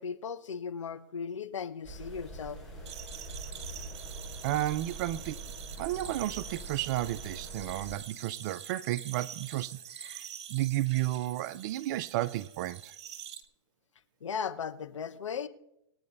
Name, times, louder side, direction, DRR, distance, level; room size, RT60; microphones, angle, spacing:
voice 1, 0.0-2.6 14.2-15.5, left 6 dB, 80° left, 1.1 m, -37 dB
sound 1, 1.8-8.0, right 2 dB, ahead, 5.5 m, -44 dB
sound 2, 2.9-13.4, right 9 dB, 60° right, 1.4 m, -46 dB
voice 2, 4.4-5.4 5.8-10.2 10.5-12.9, right 15 dB, 40° right, 0.5 m, -32 dB
20.5 x 9.4 x 2.7 m
hypercardioid pair, 130°, 16 cm